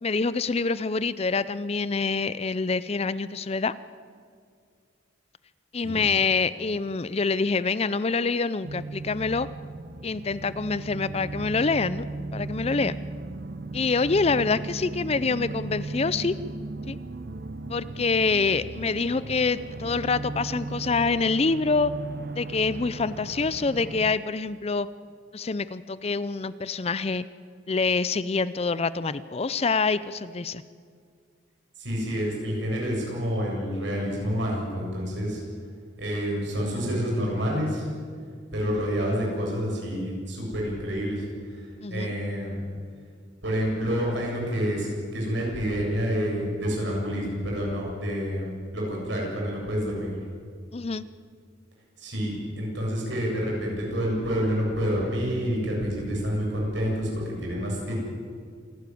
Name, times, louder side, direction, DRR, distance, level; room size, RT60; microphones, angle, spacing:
voice 1, 0.0-3.7 5.7-9.5 10.0-12.0 12.3-13.0 13.7-16.4 16.9-17.0 17.7-21.9 22.4-24.9 25.3-27.2 27.7-30.6 41.8-42.1 50.7-51.0, left 4 dB, 30° left, 16 dB, 0.5 m, -26 dB
sound 1, 8.6-24.1, right 2 dB, 50° right, 0.7 m, -36 dB
voice 2, 31.8-35.4 36.0-37.9 38.5-42.6 43.4-44.9 45.1-50.2 52.0-57.9, equal, 65° right, -2 dB, 7.8 m, -28 dB
27.5 x 12.0 x 9.3 m, 2.1 s
head